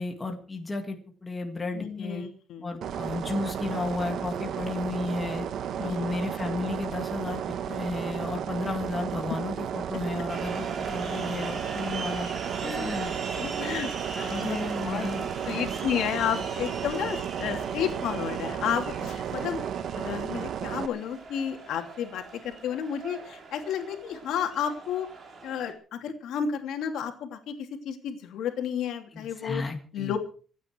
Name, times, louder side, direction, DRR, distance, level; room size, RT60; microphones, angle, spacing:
voice 1, 0.0-2.2 2.6-5.5 5.8-12.3 12.6-13.1 14.3-15.7 29.1-30.2, left 3 dB, 15° left, 3 dB, 2.0 m, -33 dB
voice 2, 1.7-2.8 5.8-6.1 12.6-13.0 13.3-15.1 15.4-19.6 19.9-25.1 25.4-29.6 29.9-30.2, left 8 dB, 70° left, 4 dB, 2.9 m, -32 dB
sound 1, 2.8-20.9, right 9 dB, 55° right, 0.9 m, -33 dB
sound 2, 10.3-25.7, right 4 dB, 35° right, 3.3 m, -40 dB
26.5 x 9.4 x 4.7 m, 0.41 s
cardioid pair, 175°, 0 cm